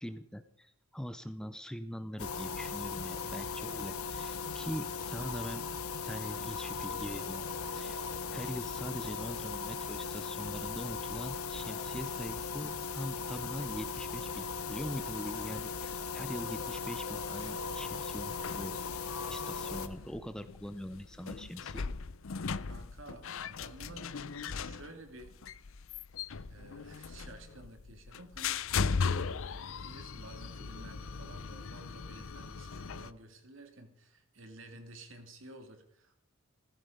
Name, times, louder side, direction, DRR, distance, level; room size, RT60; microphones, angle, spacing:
voice 1, 0.0-5.6 6.0-7.4 7.7-8.0 8.3-18.7 19.3-21.9, equal, 5° left, 11 dB, 0.6 m, -42 dB
sound 1, 2.2-19.9, left 5 dB, 90° left, 1.3 m, -38 dB
sound 2, 17.4-33.1, left 5 dB, 70° left, 0.6 m, -38 dB
voice 2, 22.7-24.1 24.4-25.3 26.5-29.5 29.8-36.1, right 2 dB, 60° right, 5 dB, 2.6 m, -52 dB
16.0 x 14.5 x 5.3 m, 0.69 s
head